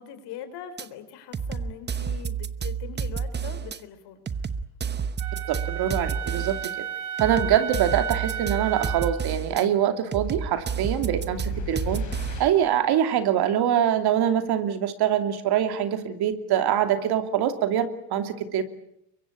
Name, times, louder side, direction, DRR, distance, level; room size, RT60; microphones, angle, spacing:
voice 1, 0.0-4.2 17.0-17.1, left 9 dB, 65° left, 10 dB, 4.3 m, -41 dB
sound 1, 0.8-0.9 1.3-3.8 4.3-6.7 7.2-9.6 10.1-12.5, right 6 dB, 25° right, 1.0 m, -30 dB
Wind instrument woodwind instrument, 5.2-9.3, right 9 dB, 85° right, 2.8 m, -33 dB
voice 2, 5.7-6.6 7.2-12.0 12.4-18.6, right 10 dB, 55° right, 8 dB, 2.8 m, -24 dB
sound 2, 10.2-12.8, left 9 dB, 40° left, 4.1 m, -39 dB
23.5 x 23.0 x 8.5 m, 0.77 s
supercardioid pair, 100°, 45 cm